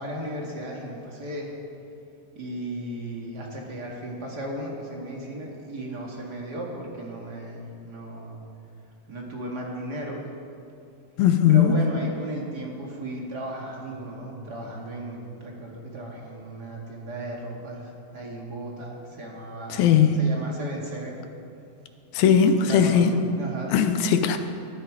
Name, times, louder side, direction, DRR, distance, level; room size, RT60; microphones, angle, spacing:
voice 1, 0.0-1.5 2.4-8.4 9.1-10.2 11.5-19.9 20.2-21.3 22.6-23.7, right 1 dB, 35° right, -1 dB, 1.7 m, -35 dB
voice 2, 11.2-11.9 19.7-20.2 22.1-23.2 23.7-24.4, left 7 dB, 80° left, 8 dB, 2.6 m, -19 dB
20.5 x 11.0 x 4.9 m, 2.7 s
omnidirectional pair, 4.2 m